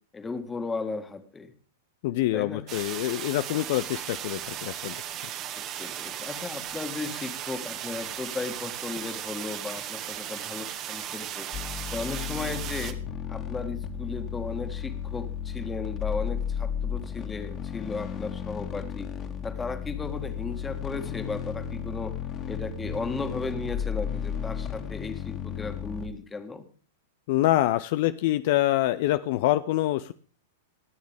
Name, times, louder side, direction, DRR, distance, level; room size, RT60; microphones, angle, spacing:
voice 1, 0.1-1.5 2.3-2.6 5.5-11.5 11.9-13.0 13.3-19.1 19.4-22.1 22.5-26.7, left 4 dB, 15° left, 7 dB, 1.9 m, -35 dB
voice 2, 2.0-5.0 27.3-30.1, left 15 dB, 50° left, 13 dB, 0.5 m, -25 dB
sound 1, 2.7-12.9, right 11 dB, 35° right, 1.6 m, -36 dB
sound 2, 11.5-26.1, left 8 dB, 30° left, 2.1 m, -34 dB
27.0 x 9.4 x 3.6 m, 0.40 s
figure-of-eight pair, 100°, 0 cm